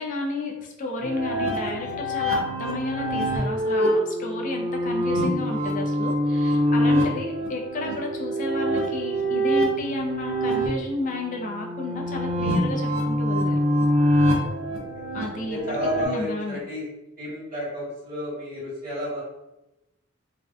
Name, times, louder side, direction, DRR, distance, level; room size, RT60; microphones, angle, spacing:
voice 1, 0.0-13.6 15.1-16.6, left 2 dB, 40° left, 1 dB, 0.4 m, -32 dB
sound 1, 1.0-16.1, equal, 80° right, 0.5 m, -25 dB
voice 2, 14.4-14.9 15.5-16.8 17.2-19.2, left 1 dB, 45° right, -8 dB, 1.3 m, -32 dB
2.5 x 2.1 x 2.4 m, 0.94 s
head